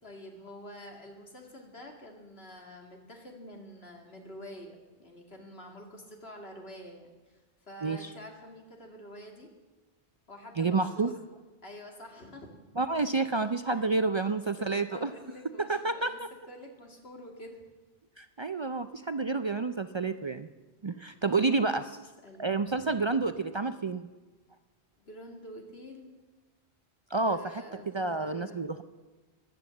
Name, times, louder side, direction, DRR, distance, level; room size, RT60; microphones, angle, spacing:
voice 1, 0.0-7.4 7.7-9.5 10.3-11.2 11.6-12.5 13.7-13.8 14.6-17.6 21.2-22.0 22.2-23.0 25.0-26.1 27.2-28.6, equal, 65° left, 1 dB, 2.6 m, -47 dB
voice 2, 10.6-11.1 12.8-15.1 15.6-16.3 18.2-20.5 20.8-21.8 22.4-24.1 27.1-27.5 27.9-28.8, right 3 dB, 45° right, 10 dB, 0.3 m, -29 dB
16.5 x 11.5 x 7.2 m, 1.2 s
omnidirectional pair, 1.1 m